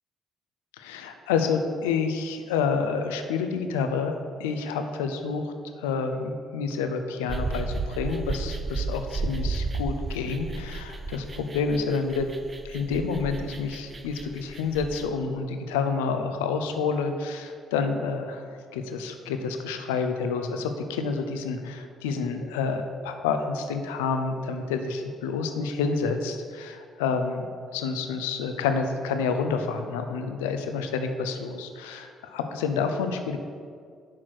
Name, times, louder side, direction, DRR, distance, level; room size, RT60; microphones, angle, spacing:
voice 1, 0.8-4.1 4.4-5.5 5.8-12.3 12.6-27.5 27.7-33.4, left 5 dB, 85° left, 6 dB, 0.5 m, -29 dB
sound 1, 7.3-15.1, right 3 dB, 35° right, 0.5 m, -33 dB
6.4 x 4.4 x 6.1 m, 2.1 s
hypercardioid pair, 50°, 0 cm